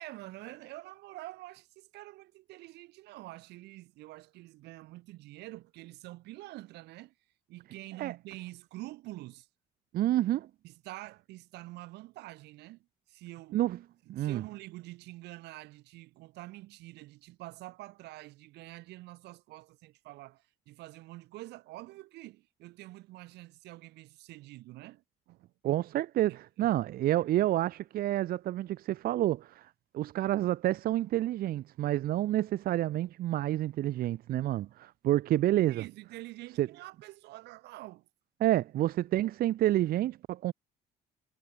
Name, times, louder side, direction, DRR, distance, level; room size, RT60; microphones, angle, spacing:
voice 1, 0.0-7.1 7.5-9.5 10.6-13.6 14.1-25.5 26.3-26.7 35.7-38.1, right 18 dB, 85° right, 1.9 m, -47 dB
voice 2, 9.9-10.5 13.5-13.8 14.1-14.4 25.6-35.8 36.6-36.7 38.4-40.5, right 14 dB, 60° right, 0.7 m, -29 dB
cardioid pair, 110°, 17 cm